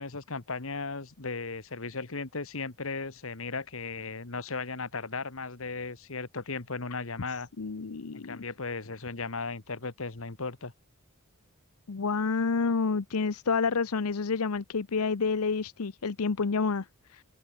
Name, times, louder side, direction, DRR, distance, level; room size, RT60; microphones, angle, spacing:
voice 1, 0.0-7.5 8.1-10.7, left 4 dB, 65° left, 1.6 m, -36 dB
voice 2, 7.6-8.4 11.9-17.2, left 4 dB, 85° left, 0.7 m, -29 dB
open air
head